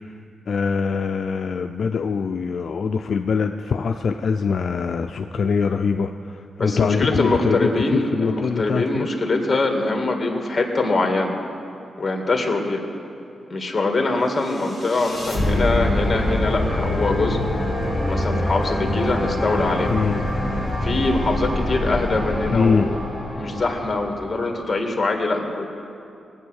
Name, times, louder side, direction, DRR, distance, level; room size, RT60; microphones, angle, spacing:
voice 1, 0.5-9.1 19.9-20.2 22.5-22.9, left 5 dB, 60° left, 5 dB, 0.4 m, -23 dB
voice 2, 6.6-11.3 12.0-12.8 13.5-17.4 18.1-19.9 20.8-22.9 23.4-25.7, left 2 dB, 25° left, 3 dB, 1.9 m, -23 dB
sound 1, 14.4-24.6, left 1 dB, 15° right, 3.6 m, -25 dB
20.5 x 8.7 x 6.4 m, 2.6 s
wide cardioid pair, 120°, 0 cm